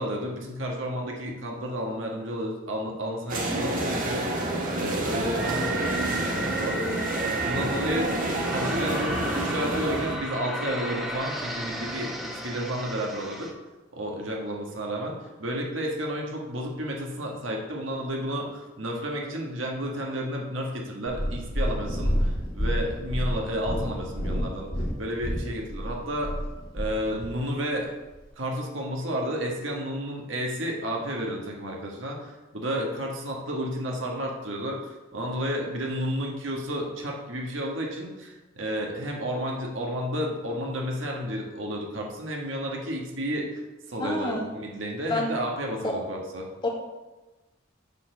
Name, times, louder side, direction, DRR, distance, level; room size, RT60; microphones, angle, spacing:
voice 1, 0.0-4.4 4.7-7.0 7.3-8.1 8.5-13.5 13.9-24.7 25.0-26.3 26.7-27.9 28.4-43.6 43.9-46.5, equal, 70° right, 0 dB, 1.4 m, -31 dB
sound 1, 3.3-10.2, right 1 dB, 45° right, 1.4 m, -28 dB
sound 2, 5.4-13.5, right 1 dB, ahead, 1.1 m, -34 dB
Purr, 21.1-27.4 28.1-28.2, equal, 45° left, 2.0 m, -29 dB
voice 2, 44.0-44.5 45.1-45.3 45.8-46.0 46.6-46.7, left 2 dB, 25° left, -2 dB, 1.5 m, -27 dB
7.4 x 4.1 x 6.6 m, 1.1 s
head